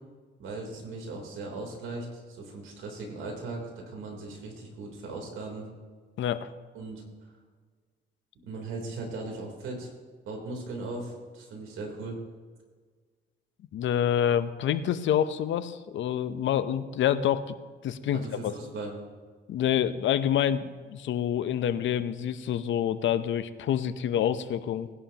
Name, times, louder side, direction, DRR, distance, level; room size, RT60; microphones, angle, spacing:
voice 1, 0.4-5.7 6.7-7.0 8.5-9.9 10.3-12.2 18.1-18.9, right 3 dB, 85° right, 0 dB, 3.5 m, -38 dB
voice 2, 6.2-6.5 13.7-17.5 17.8-18.5 19.5-24.9, left 10 dB, 70° left, 12 dB, 0.8 m, -27 dB
19.5 x 11.0 x 2.9 m, 1.5 s
cardioid pair, 90°, 20 cm